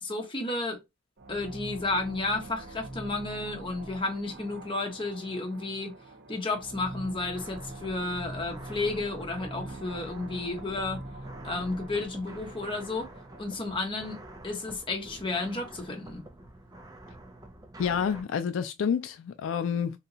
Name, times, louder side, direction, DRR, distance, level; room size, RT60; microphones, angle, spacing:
voice 1, 0.0-0.8 1.3-5.9 6.3-11.0 11.4-13.1 13.4-16.3, left 2 dB, 25° left, 0.9 m, -32 dB
sound 1, 1.2-14.5, right 1 dB, 55° right, 0.7 m, -44 dB
sound 2, 7.3-18.2, right 1 dB, 20° right, 0.5 m, -48 dB
voice 2, 17.8-20.0, left 7 dB, 75° left, 0.3 m, -28 dB
2.9 x 2.2 x 3.8 m
head